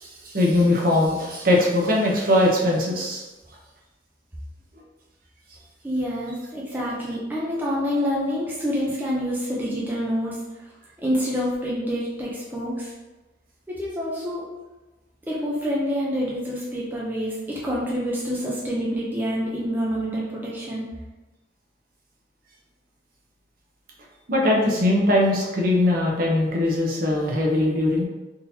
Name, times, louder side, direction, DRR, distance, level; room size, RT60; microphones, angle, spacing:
voice 1, 0.0-3.2 24.3-28.0, left 1 dB, 50° right, -2 dB, 0.7 m, -21 dB
voice 2, 5.8-10.4 11.0-12.9 13.7-14.5 15.3-20.8, equal, 10° right, -6 dB, 0.5 m, -27 dB
3.7 x 2.9 x 2.7 m, 1.1 s
head